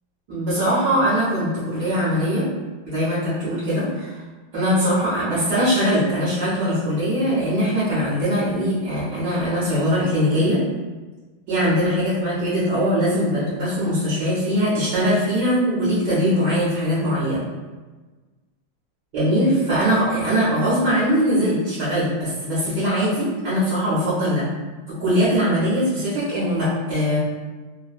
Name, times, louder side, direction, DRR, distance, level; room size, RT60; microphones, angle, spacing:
voice 1, 0.3-2.4 2.8-4.2 4.5-10.6 11.5-17.4 19.1-24.5 24.9-27.2, equal, 60° right, -10 dB, 1.3 m, -21 dB
3.5 x 2.1 x 2.4 m, 1.3 s
omnidirectional pair, 2.3 m